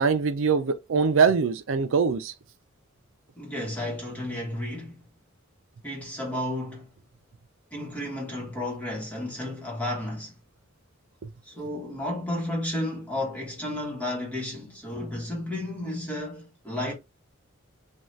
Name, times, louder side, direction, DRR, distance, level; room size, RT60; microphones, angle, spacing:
voice 1, 0.0-2.3 11.2-11.3, right 5 dB, 70° right, 0.4 m, -23 dB
voice 2, 3.4-5.0 5.8-6.9 7.7-10.4 11.4-16.9, left 1 dB, 5° left, 1.0 m, -32 dB
2.7 x 2.3 x 3.1 m
head